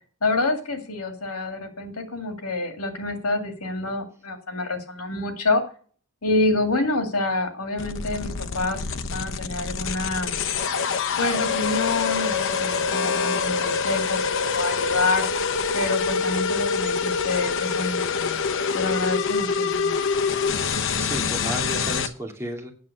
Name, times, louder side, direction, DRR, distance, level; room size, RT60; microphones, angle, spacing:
voice 1, 0.2-5.6 6.2-8.8 9.1-10.4 11.2-15.3 15.7-18.4 18.7-19.9, left 2 dB, 80° left, 6 dB, 2.3 m, -27 dB
sound 1, 7.8-22.1, left 5 dB, 60° left, 0.9 m, -25 dB
voice 2, 21.0-22.7, right 1 dB, 10° right, -1 dB, 2.6 m, -32 dB
9.5 x 7.2 x 6.6 m, 0.42 s
head